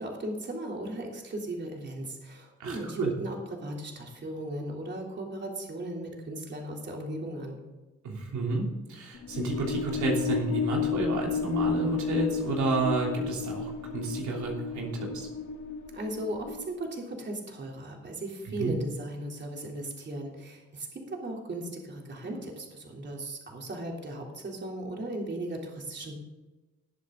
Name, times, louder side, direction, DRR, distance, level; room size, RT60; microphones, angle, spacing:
voice 1, 0.0-7.6 15.9-26.1, right 1 dB, 35° right, 0 dB, 3.3 m, -37 dB
voice 2, 2.6-3.1 8.0-15.3 18.6-18.7, right 3 dB, 75° right, -1 dB, 3.2 m, -31 dB
sound 1, 9.1-16.8, left 6 dB, 65° left, 3.5 m, -32 dB
19.5 x 7.9 x 3.9 m, 1.2 s
cardioid pair, 90°, 30 cm